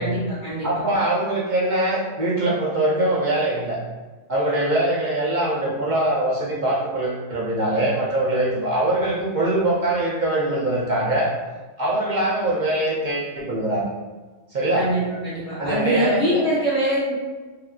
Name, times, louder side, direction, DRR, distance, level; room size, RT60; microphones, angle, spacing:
voice 1, 0.0-0.7 14.7-17.1, equal, 5° right, -11 dB, 0.8 m, -23 dB
voice 2, 0.6-3.8 4.3-11.3 11.8-13.8 14.5-14.9 15.6-16.4, right 1 dB, 65° right, -4 dB, 0.4 m, -22 dB
3.3 x 2.4 x 2.3 m, 1.3 s
omnidirectional pair, 1.3 m